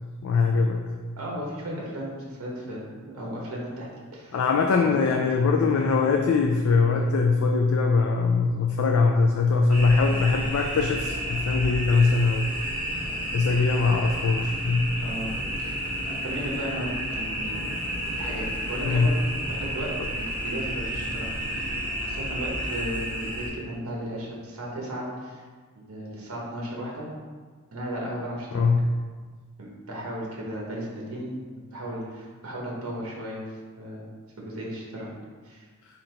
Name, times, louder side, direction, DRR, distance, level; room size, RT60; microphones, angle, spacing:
voice 1, 0.2-0.9 4.3-12.6 13.3-14.8 18.8-19.1 20.0-20.1 28.5-28.8, left 4 dB, 70° left, 2 dB, 0.3 m, -22 dB
voice 2, 1.2-4.4 4.8-4.9 15.0-15.3 15.6-19.9 20.2-25.4 25.7-27.1 27.7-28.7 29.6-33.4 33.8-34.1 34.4-35.1 35.4-35.6, equal, 70° right, -3 dB, 1.0 m, -35 dB
sound 1, 9.7-23.5, equal, 40° right, 1.5 m, -31 dB
3.9 x 2.8 x 4.3 m, 1.5 s
head